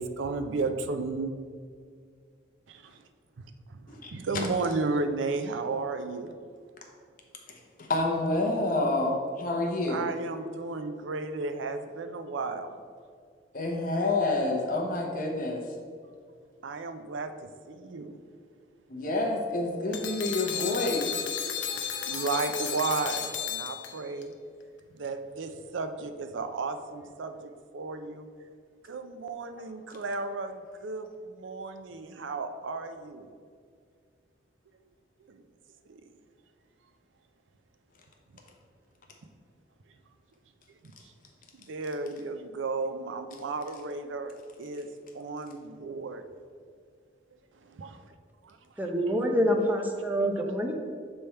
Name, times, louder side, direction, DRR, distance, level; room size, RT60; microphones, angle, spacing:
voice 1, 0.0-1.3 2.7-3.0 3.4-3.8 4.1-6.3 9.9-12.7 16.6-18.2 21.4-24.3 25.0-28.3 28.9-33.3 35.3-35.4 35.9-36.0 41.5-44.9 45.1-46.2 47.6-48.1 48.4-48.6, right 3 dB, 85° right, 8 dB, 0.5 m, -34 dB
voice 2, 3.9-4.4 7.8-10.1 13.5-15.6 18.9-21.1, left 2 dB, 45° left, 0 dB, 0.9 m, -28 dB
sound 1, 19.9-24.2, left 8 dB, 85° left, 0.6 m, -33 dB
voice 3, 48.8-50.7, equal, 10° right, 2 dB, 0.5 m, -26 dB
6.9 x 3.4 x 4.4 m, 2.1 s
head